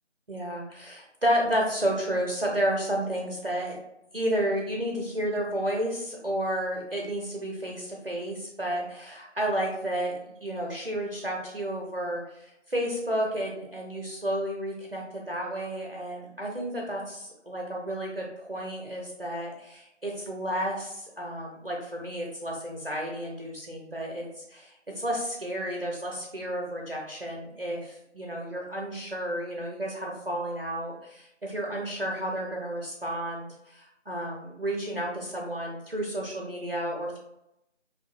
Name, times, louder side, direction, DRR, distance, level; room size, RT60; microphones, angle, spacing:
voice 1, 0.3-3.8 4.1-37.2, right 1 dB, 55° right, -2 dB, 0.5 m, -31 dB
2.6 x 2.5 x 2.5 m, 0.84 s
figure-of-eight pair, 175°, 36 cm